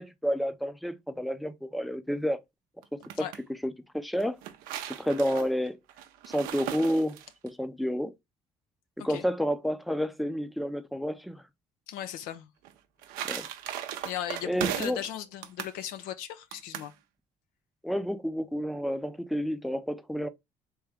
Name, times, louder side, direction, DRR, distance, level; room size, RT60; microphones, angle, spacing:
voice 1, 0.0-2.4 3.2-3.3 3.6-4.4 5.0-5.8 6.3-8.1 9.0-11.4 13.3-13.5 14.5-15.0 17.8-20.3, equal, ahead, 0.5 m, -30 dB
sound 1, 2.8-3.4 4.2-7.5 12.6-15.1 15.4-15.8 16.5-16.9, right 11 dB, 85° right, 0.5 m, -37 dB
voice 2, 11.9-12.5 14.0-16.9, left 11 dB, 90° left, 0.5 m, -37 dB
3.5 x 2.8 x 3.4 m
supercardioid pair, 80°, 14 cm